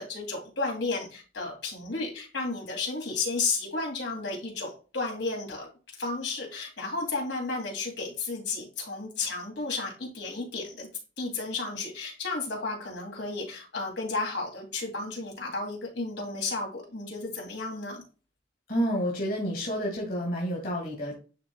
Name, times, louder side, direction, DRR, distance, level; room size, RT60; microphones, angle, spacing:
voice 1, 0.0-5.7 6.0-10.9 11.2-18.0, left 3 dB, 80° left, 0 dB, 2.8 m, -33 dB
voice 2, 18.7-21.2, equal, 55° left, -2 dB, 2.2 m, -29 dB
11.0 x 3.8 x 2.3 m, 0.35 s
head